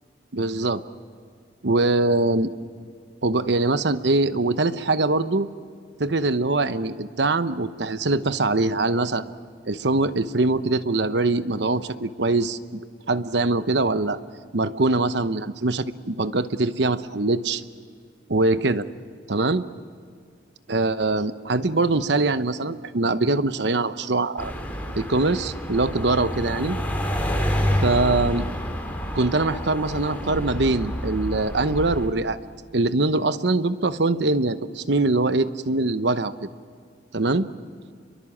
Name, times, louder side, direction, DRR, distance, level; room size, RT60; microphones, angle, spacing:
voice 1, 0.3-0.8 1.6-2.5 3.2-5.5 6.0-9.3 9.7-12.8 13.1-14.2 14.5-17.6 18.3-18.8 19.3-19.6 20.7-24.5 24.9-26.8 27.8-28.5 29.1-32.4 32.7-36.5 37.1-37.5, right 2 dB, 70° right, 12 dB, 0.9 m, -23 dB
sound 1, 24.4-32.1, equal, 10° left, 2.9 m, -28 dB
30.0 x 23.0 x 7.3 m, 2.1 s
head